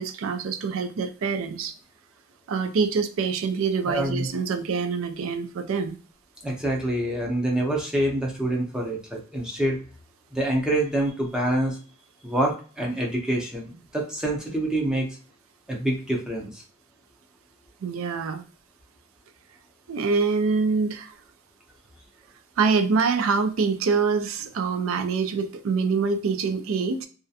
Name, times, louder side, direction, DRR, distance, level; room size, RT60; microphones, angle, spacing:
voice 1, 0.0-1.7 2.5-6.0 17.8-18.4 19.9-21.1 22.6-27.1, right 5 dB, 70° right, 0.4 m, -25 dB
voice 2, 3.9-4.3 6.4-9.8 10.3-11.8 12.2-15.2 15.7-16.6, right 1 dB, 5° right, 0.6 m, -26 dB
2.4 x 2.1 x 2.6 m
head